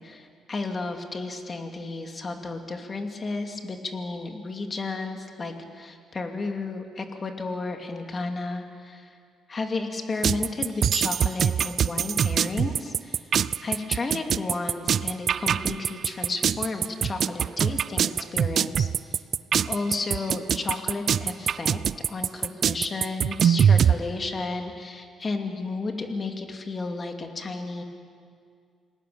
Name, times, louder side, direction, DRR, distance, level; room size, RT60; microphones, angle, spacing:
voice 1, 0.0-9.1 9.5-13.3 13.6-19.2 19.7-21.8 22.1-27.8, left 3 dB, 35° left, 4 dB, 2.6 m, -33 dB
sound 1, 10.2-23.9, right 8 dB, 60° right, 0.5 m, -23 dB
27.5 x 18.5 x 7.0 m, 2.2 s
cardioid pair, 90°, 0 cm